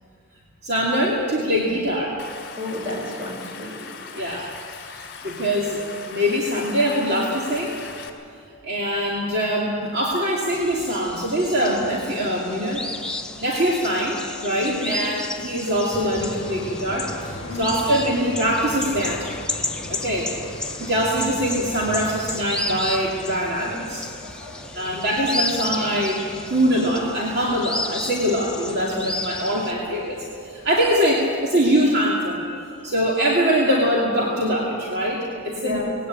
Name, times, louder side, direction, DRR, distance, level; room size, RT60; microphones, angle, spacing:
voice 1, 0.6-2.2 4.1-4.5 4.8-7.8 8.6-12.9 13.4-19.3 19.9-20.3 20.8-24.1 24.7-26.2 26.5-36.1, equal, 50° right, -3 dB, 2.6 m, -23 dB
Stream, 2.2-8.1, left 6 dB, 50° left, 3.0 m, -39 dB
voice 2, 2.6-3.7 11.6-11.9 14.6-14.9 17.4-17.7 23.6-23.8 24.1-24.9 28.9-29.0 34.9-35.1 35.6-35.9, left 2 dB, 25° right, -2 dB, 5.8 m, -33 dB
sound 1, 10.5-29.7, left 2 dB, 5° left, 0.8 m, -33 dB
sound 2, 15.9-31.1, left 1 dB, 30° left, 4.7 m, -39 dB
19.5 x 17.5 x 8.9 m, 2.4 s
head